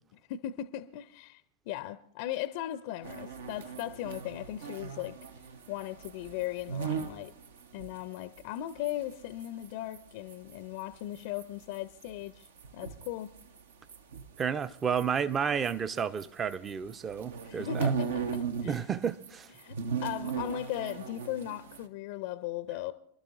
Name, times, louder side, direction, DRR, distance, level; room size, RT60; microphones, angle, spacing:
voice 1, 0.3-5.2 5.7-7.3 7.7-12.5 12.7-13.3 17.4-18.8 19.6-19.8 20.0-22.9, left 13 dB, 50° left, 0.5 m, -38 dB
sound 1, 3.0-10.0 10.3-16.3 16.5-18.8 19.0-21.9, right 6 dB, 65° right, 0.8 m, -38 dB
voice 2, 14.4-17.9 18.6-19.5, right 7 dB, 20° right, 0.6 m, -31 dB
27.0 x 12.0 x 2.5 m
figure-of-eight pair, 90°, 0 cm